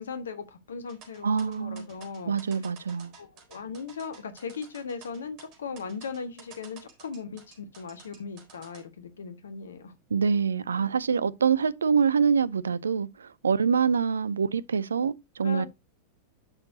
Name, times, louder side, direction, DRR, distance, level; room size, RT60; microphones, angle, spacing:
voice 1, 0.0-2.3 3.2-9.9 15.4-15.7, left 5 dB, 65° left, 1.5 m, -38 dB
sound 1, 0.9-8.8, right 6 dB, 40° right, 4.1 m, -52 dB
voice 2, 1.2-1.9 2.3-3.1 10.1-15.7, right 6 dB, 70° right, 0.5 m, -25 dB
10.5 x 6.6 x 2.8 m
figure-of-eight pair, 90°, 0 cm